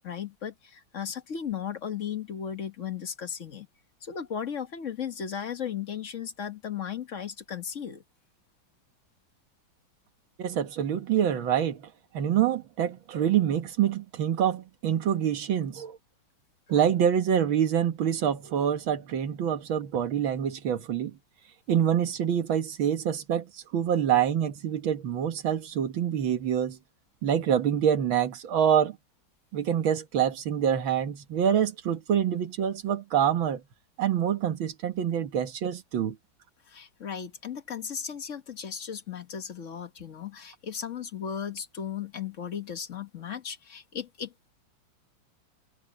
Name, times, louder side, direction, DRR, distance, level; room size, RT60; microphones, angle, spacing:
voice 1, 0.0-3.7 4.0-8.0 36.7-44.5, left 8 dB, 45° left, 1.4 m, -36 dB
voice 2, 10.4-11.9 12.1-16.0 16.7-21.2 21.7-26.8 27.2-29.0 29.5-33.6 34.0-36.2, right 9 dB, 90° right, 2.2 m, -26 dB
omnidirectional pair, 2.1 m